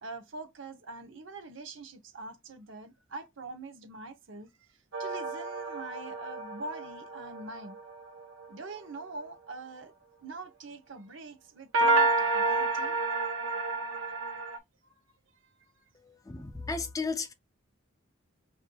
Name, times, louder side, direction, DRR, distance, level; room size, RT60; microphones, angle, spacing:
voice 1, 0.0-4.5 5.0-7.8 8.5-9.9 10.2-13.0 15.4-15.5, right 3 dB, 70° right, 0.8 m, -43 dB
sound 1, 4.9-8.5 11.7-14.6, right 2 dB, 90° right, 1.1 m, -29 dB
voice 2, 16.0-17.3, left 4 dB, 15° left, 0.4 m, -34 dB
6.1 x 2.6 x 2.2 m
head